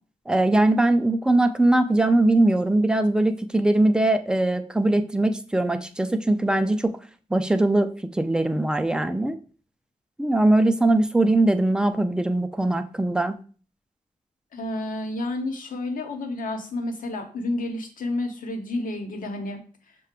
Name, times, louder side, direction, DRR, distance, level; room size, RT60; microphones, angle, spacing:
voice 1, 0.3-6.9 7.3-9.4 10.2-13.4, right 2 dB, 5° right, 9 dB, 0.3 m, -21 dB
voice 2, 14.5-19.6, left 2 dB, 85° left, 4 dB, 0.9 m, -30 dB
6.4 x 2.2 x 3.6 m, 0.40 s
wide cardioid pair, 130°, 14 cm